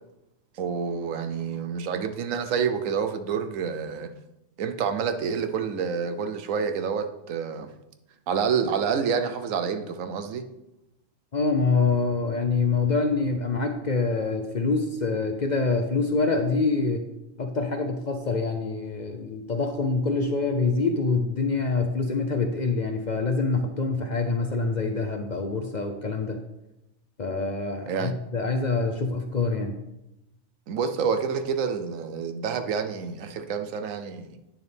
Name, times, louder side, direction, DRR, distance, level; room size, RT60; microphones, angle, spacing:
voice 1, 0.6-4.1 4.6-7.7 8.3-10.4 27.9-28.1 30.7-34.4, right 6 dB, 85° right, 9 dB, 1.1 m, -28 dB
voice 2, 11.3-17.1 17.4-26.4 27.2-29.8, left 4 dB, 50° left, 5 dB, 0.6 m, -25 dB
9.1 x 6.8 x 3.4 m, 0.90 s
omnidirectional pair, 1.3 m